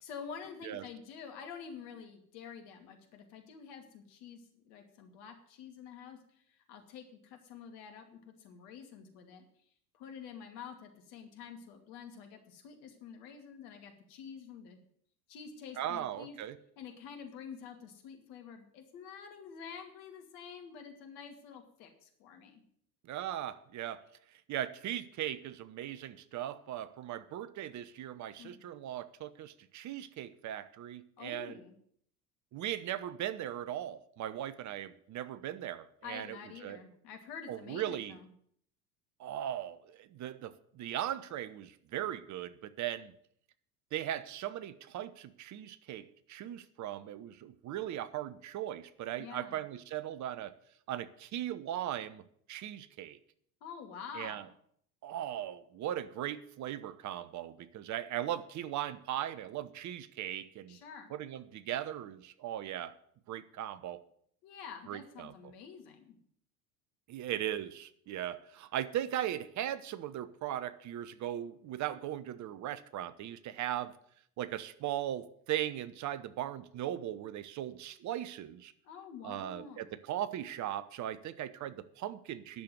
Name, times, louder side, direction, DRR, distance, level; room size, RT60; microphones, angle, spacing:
voice 1, 0.0-9.4 9.9-14.8 15.3-16.4 16.8-22.6 28.4-28.6 31.2-31.7 36.0-38.3 49.2-49.6 53.6-54.5 60.7-61.1 64.4-66.2 78.8-79.8, left 7 dB, 60° left, 5 dB, 2.5 m, -48 dB
voice 2, 15.8-16.6 23.1-24.0 24.5-31.5 32.5-36.4 36.6-36.8 37.5-38.2 39.2-43.1 43.9-50.5 50.9-52.2 52.5-53.2 54.1-54.4 55.0-60.8 61.1-62.9 63.3-64.0 64.9-65.5 67.1-73.9 74.4-78.7 79.2-82.6, right 12 dB, 40° right, 15 dB, 0.9 m, -38 dB
10.5 x 6.8 x 9.2 m, 0.65 s
hypercardioid pair, 75°, 44 cm